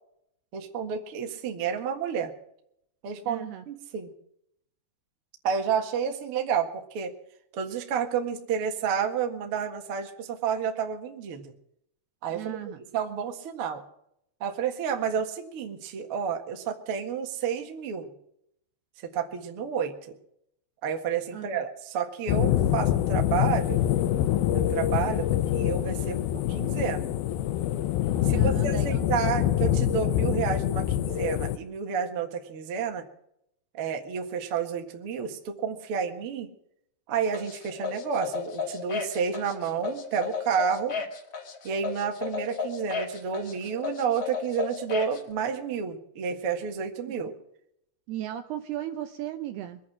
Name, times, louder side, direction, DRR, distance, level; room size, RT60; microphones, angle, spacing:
voice 1, 0.5-2.3 3.0-4.1 5.4-7.1 7.5-11.5 12.2-12.6 12.9-13.8 14.4-18.1 19.1-20.1 20.8-23.8 24.5-25.3 25.5-26.2 26.5-27.1 28.2-33.0 33.7-36.5 37.1-40.9 41.6-47.4, right 7 dB, 60° right, 4 dB, 1.4 m, -30 dB
voice 2, 3.3-3.6 12.3-12.8 21.3-21.6 28.2-29.1 47.1-47.2 48.1-49.8, right 12 dB, 80° right, 8 dB, 2.4 m, -36 dB
sound 1, 22.3-31.6, left 12 dB, 80° left, 2.1 m, -25 dB
sound 2, 37.3-45.2, left 6 dB, 45° left, 2.1 m, -33 dB
23.5 x 8.5 x 6.1 m, 0.75 s
omnidirectional pair, 5.3 m